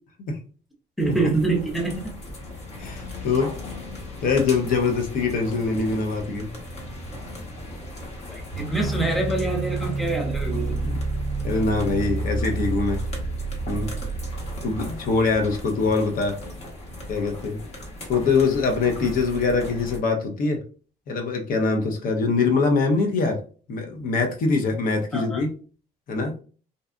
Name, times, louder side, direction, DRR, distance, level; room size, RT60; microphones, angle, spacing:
sound 1, 1.0-20.0, left 1 dB, 40° left, 1.0 m, -38 dB
voice 1, 1.0-2.2 8.3-10.8 25.1-25.4, right 2 dB, ahead, 0 dB, 0.7 m, -26 dB
voice 2, 2.8-3.5 4.2-6.5 10.8-11.0 11.4-13.0 13.7-13.9 14.6-16.4 17.1-17.6 18.1-20.6 21.1-23.4 23.7-25.5 26.1-26.3, left 4 dB, 55° left, 4 dB, 0.6 m, -23 dB
sound 2, 8.5-15.7, right 2 dB, 60° right, 0.4 m, -29 dB
2.6 x 2.2 x 2.4 m, 0.39 s
cardioid pair, 110°, 17 cm